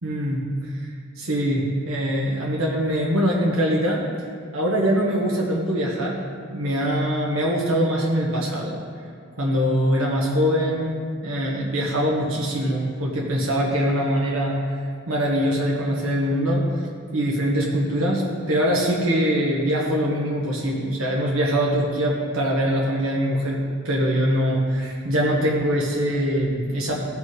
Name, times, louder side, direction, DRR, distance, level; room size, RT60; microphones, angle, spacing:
voice 1, 0.0-4.0 4.5-6.2 6.5-8.8 9.4-10.9 11.2-14.5 15.1-16.6 17.1-23.6 23.8-27.0, equal, 75° right, -3 dB, 1.3 m, -23 dB
16.0 x 5.3 x 4.7 m, 2.2 s
head